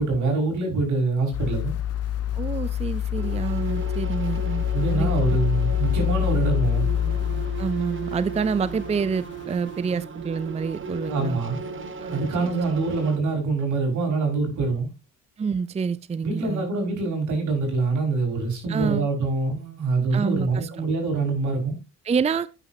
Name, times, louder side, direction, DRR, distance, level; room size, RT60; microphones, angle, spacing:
voice 1, 0.0-1.7 4.7-6.9 11.1-11.6 12.1-14.9 16.2-21.8, right 3 dB, 75° right, 5.5 m, -25 dB
sound 1, 1.3-9.6 10.0-10.1, left 10 dB, 55° left, 0.6 m, -26 dB
voice 2, 2.3-4.7 4.9-5.4 7.6-11.4 12.0-12.5 15.4-16.7 18.7-19.1 20.1-20.7 22.1-22.5, right 5 dB, 20° right, 0.5 m, -27 dB
sound 2, 3.1-13.2, right 4 dB, 40° right, 1.2 m, -36 dB
11.5 x 9.1 x 2.8 m
cardioid pair, 90°, 30 cm